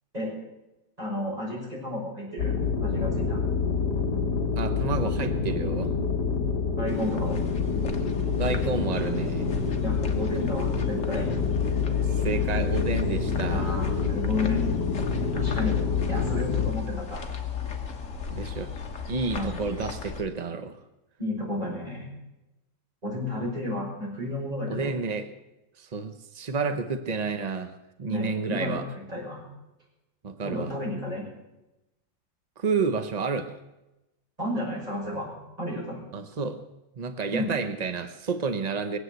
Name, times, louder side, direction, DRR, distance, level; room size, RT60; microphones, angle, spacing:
voice 1, 1.0-3.4 6.8-7.4 9.8-11.2 13.5-14.6 15.3-15.8 16.1-17.2 19.3-19.6 21.2-22.1 23.0-24.9 28.1-29.4 30.4-31.2 34.4-35.3 35.6-36.0 37.3-37.5, left 1 dB, 20° right, -4 dB, 6.4 m, -32 dB
Into the Sun, 2.4-16.7, left 5 dB, 60° left, 2.3 m, -27 dB
voice 2, 4.6-5.9 8.4-9.5 12.1-13.8 18.3-18.7 19.1-20.8 24.7-25.3 25.8-27.7 28.0-28.9 30.2-30.7 32.6-33.5 36.1-36.6 37.0-39.0, right 4 dB, 60° right, 8 dB, 0.4 m, -30 dB
sound 1, 6.9-20.2, left 6 dB, 45° left, 1.6 m, -37 dB
20.5 x 8.1 x 8.0 m, 0.96 s
omnidirectional pair, 2.0 m